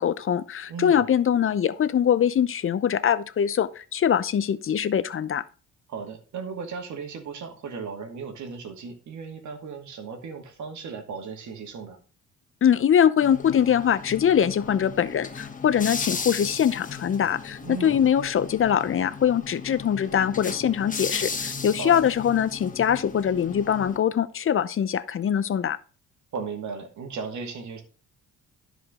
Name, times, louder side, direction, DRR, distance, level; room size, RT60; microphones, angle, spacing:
voice 1, 0.0-5.4 12.6-25.8, left 9 dB, 45° left, 0.7 m, -23 dB
voice 2, 0.7-1.1 5.9-12.0 17.6-18.0 21.8-22.0 26.3-27.8, right 5 dB, 70° right, 2.3 m, -36 dB
sound 1, 13.2-24.0, left 5 dB, 25° left, 1.3 m, -36 dB
12.5 x 5.1 x 3.7 m
cardioid pair, 90°, 30 cm